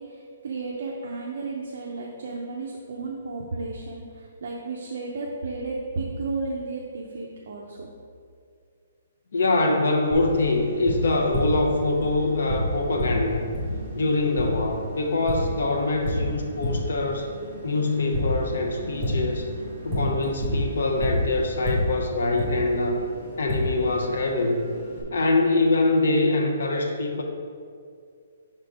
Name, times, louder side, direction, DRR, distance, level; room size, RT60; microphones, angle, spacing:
voice 1, 0.0-7.9, right 3 dB, 50° right, -2 dB, 0.6 m, -33 dB
voice 2, 9.3-13.5 13.9-17.3 17.6-19.5 19.8-23.0 23.4-24.7 25.1-27.2, left 2 dB, 65° left, 2 dB, 0.6 m, -24 dB
Tap, 10.1-25.0, left 1 dB, 5° right, 1.1 m, -31 dB
5.7 x 3.8 x 4.8 m, 2.3 s
hypercardioid pair, 180°, 0 cm